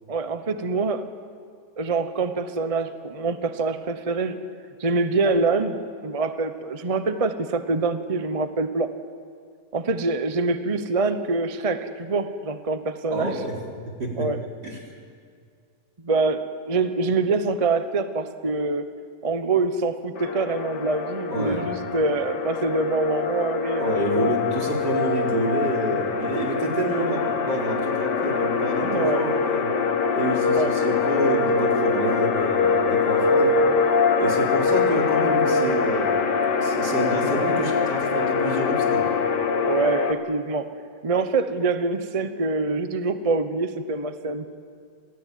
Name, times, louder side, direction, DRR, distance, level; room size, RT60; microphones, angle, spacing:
voice 1, 0.1-1.1 1.8-4.4 4.8-8.9 9.7-13.4 14.2-14.4 16.0-18.9 19.2-24.3 28.8-29.2 30.5-30.7 39.6-40.7 41.0-44.5, right 3 dB, 25° right, 9 dB, 0.9 m, -25 dB
voice 2, 13.1-13.5 14.0-14.3 14.6-14.8 21.3-21.7 23.8-29.7 30.1-33.5 34.2-36.3 36.6-39.0, right 1 dB, 80° right, -1 dB, 4.8 m, -28 dB
sound 1, 20.2-40.1, left 5 dB, 90° left, 2.0 m, -23 dB
26.5 x 17.5 x 9.4 m, 2.2 s
omnidirectional pair, 1.8 m